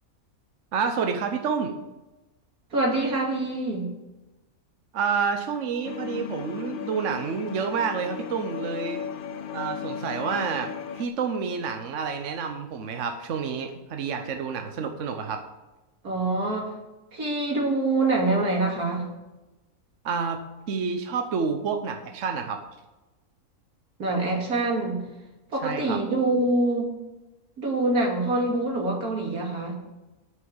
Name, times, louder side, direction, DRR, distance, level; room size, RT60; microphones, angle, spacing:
voice 1, 0.7-1.7 4.9-9.0 9.5-15.4 20.0-20.4 20.7-22.6 25.6-26.0, right 5 dB, 55° right, 6 dB, 1.2 m, -29 dB
voice 2, 2.7-3.9 16.0-16.7 17.1-19.1 24.0-25.0 25.5-26.9 27.6-29.7, right 2 dB, 85° right, 0 dB, 2.8 m, -25 dB
sound 1, 5.8-11.1, left 7 dB, 65° left, 0.5 m, -36 dB
9.3 x 6.3 x 7.8 m, 1.1 s
omnidirectional pair, 1.6 m